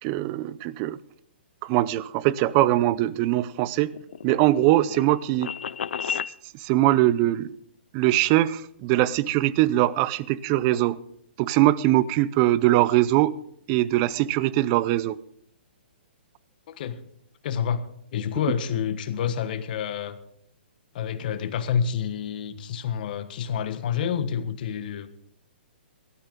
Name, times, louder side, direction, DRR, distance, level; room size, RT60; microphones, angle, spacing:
voice 1, 0.0-1.0 1.6-3.9 4.2-5.5 6.0-6.2 6.6-7.5 7.9-11.0 11.4-13.4 13.7-15.2, right 15 dB, 30° right, 0.5 m, -22 dB
sound 1, 3.3-6.3, left 8 dB, 75° left, 0.5 m, -33 dB
voice 2, 16.7-17.0 17.4-17.9 18.1-20.2 20.9-25.1, left 8 dB, 50° left, 1.4 m, -28 dB
18.5 x 12.5 x 3.7 m
hypercardioid pair, 145°, 6 cm